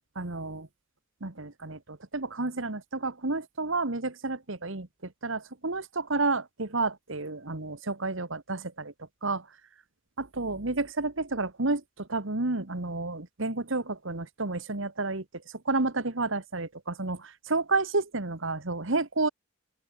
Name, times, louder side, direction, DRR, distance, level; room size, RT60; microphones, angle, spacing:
voice 1, 0.2-0.7 1.2-8.9 9.2-9.4 10.2-19.3, right 3 dB, 60° right, 1.6 m, -31 dB
open air
head